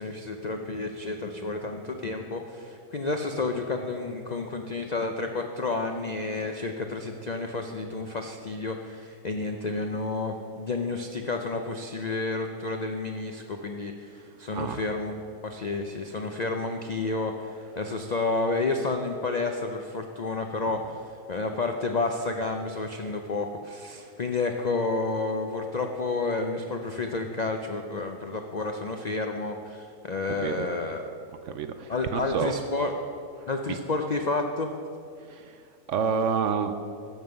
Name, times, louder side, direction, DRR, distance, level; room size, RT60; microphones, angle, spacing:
voice 1, 0.0-31.0 31.9-32.9 33.5-34.7, left 3 dB, 65° left, 4 dB, 0.4 m, -30 dB
voice 2, 30.2-30.7 31.4-32.6 33.4-33.8 35.2-35.6 35.9-36.7, right 6 dB, 65° right, 9 dB, 0.8 m, -29 dB
12.0 x 5.5 x 7.8 m, 2.3 s
omnidirectional pair, 1.6 m